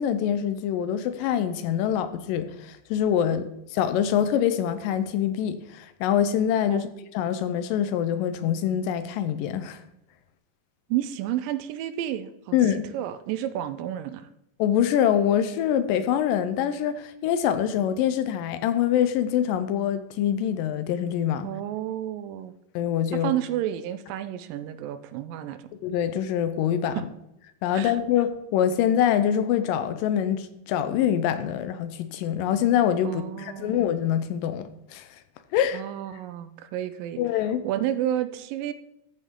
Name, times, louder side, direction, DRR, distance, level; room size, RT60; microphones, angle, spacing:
voice 1, 0.0-6.9 7.1-9.8 12.5-12.9 14.6-21.5 22.8-23.3 25.8-27.0 27.6-35.1 35.5-35.8 37.2-37.6, left 9 dB, 80° left, 10 dB, 2.2 m, -25 dB
voice 2, 10.9-12.6 12.9-14.3 21.4-22.5 23.1-25.6 27.0-27.1 27.7-28.0 33.0-33.8 35.7-37.2 37.6-38.7, right 12 dB, 80° right, 11 dB, 2.2 m, -31 dB
14.0 x 5.4 x 3.7 m, 0.84 s
omnidirectional pair, 4.0 m